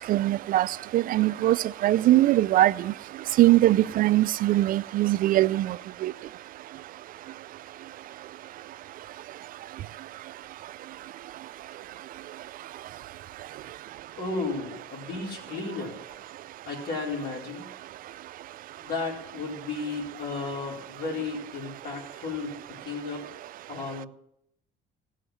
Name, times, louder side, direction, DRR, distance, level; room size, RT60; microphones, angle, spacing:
voice 1, 0.1-1.6 1.8-2.9 3.4-5.8 6.0-6.1, right 15 dB, 55° right, 0.4 m, -21 dB
voice 2, 14.2-16.2 16.6-17.7 18.8-22.5 22.8-23.2 23.7-24.1, left 3 dB, 65° left, 4.2 m, -33 dB
16.5 x 6.4 x 5.8 m
cardioid pair, 110°, 17 cm